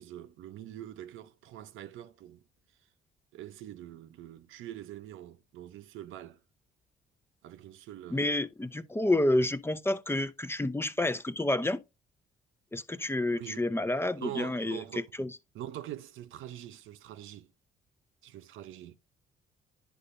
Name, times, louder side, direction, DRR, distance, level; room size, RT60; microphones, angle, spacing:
voice 1, 0.0-2.4 3.3-6.4 7.4-8.4 13.3-13.6 14.2-15.1 15.5-17.5 18.2-19.0, right 12 dB, 85° right, 0.7 m, -44 dB
voice 2, 8.1-11.8 12.7-14.8 15.2-15.3, left 1 dB, 10° left, 0.6 m, -29 dB
10.0 x 5.4 x 2.6 m
cardioid pair, 90°, 20 cm